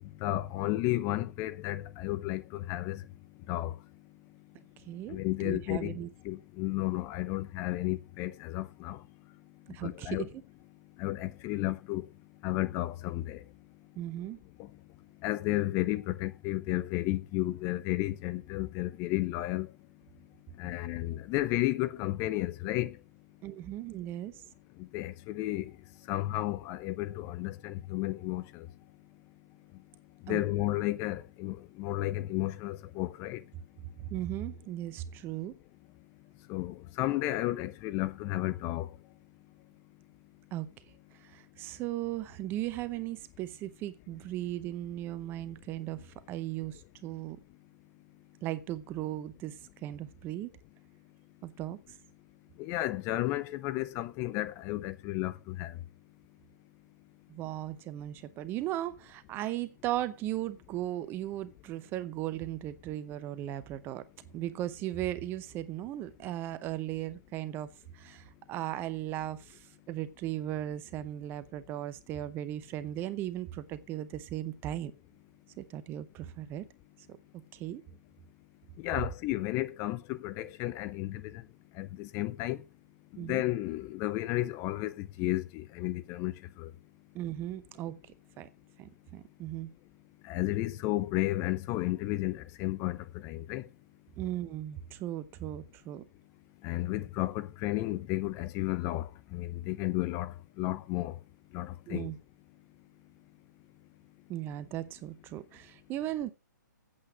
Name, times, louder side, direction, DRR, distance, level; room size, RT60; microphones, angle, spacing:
voice 1, 0.0-3.1 3.5-3.8 5.1-6.0 6.2-9.0 9.8-10.3 11.0-12.1 12.4-13.4 14.6-14.7 15.2-19.7 20.6-23.0 24.8-25.8 26.1-28.7 30.2-33.4 36.5-39.0 52.6-55.8 78.8-81.5 81.7-82.6 83.1-86.7 90.2-93.7 96.6-101.2 101.5-102.1, left 17 dB, 25° left, 0.6 m, -33 dB
voice 2, 4.9-6.1 9.7-10.3 14.0-14.4 23.4-24.3 30.3-30.4 34.1-35.5 40.5-40.7 41.2-47.4 48.4-50.5 51.4-51.8 57.3-64.0 64.3-67.7 67.9-74.9 75.6-76.6 77.1-77.2 77.5-77.8 83.2-83.4 87.1-88.0 88.4-88.5 88.8-89.7 94.2-96.0 101.9-102.2 104.3-106.3, right 13 dB, 20° right, 0.7 m, -37 dB
8.6 x 7.8 x 5.9 m
hypercardioid pair, 135°, 10 cm